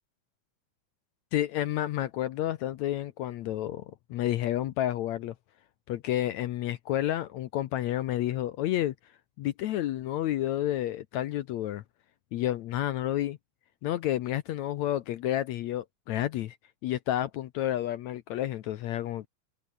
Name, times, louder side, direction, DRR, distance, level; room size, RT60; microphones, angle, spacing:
voice 1, 1.3-5.3 5.9-8.9 9.4-11.8 12.3-13.4 13.8-16.6 16.8-19.3, left 13 dB, 70° left, 1.9 m, -30 dB
open air
omnidirectional pair, 3.9 m